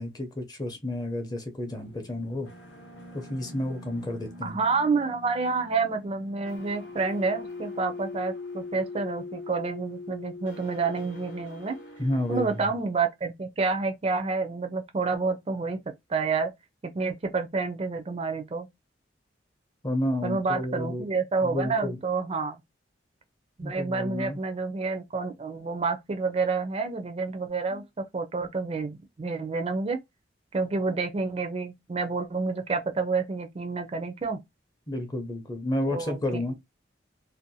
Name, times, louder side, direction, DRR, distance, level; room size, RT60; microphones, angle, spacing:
voice 1, 0.0-2.5 3.1-4.6 12.0-12.7 19.8-21.1 21.4-22.0 23.6-24.4 27.7-27.8 34.9-36.5, left 1 dB, 20° left, 0.6 m, -31 dB
sound 1, 1.7-12.6, left 3 dB, 75° left, 0.7 m, -42 dB
voice 2, 4.4-11.8 12.3-15.8 16.1-16.5 16.9-18.7 20.2-22.6 23.6-30.0 30.5-34.4 35.9-36.4, right 4 dB, 30° right, 0.4 m, -29 dB
2.6 x 2.1 x 2.6 m
head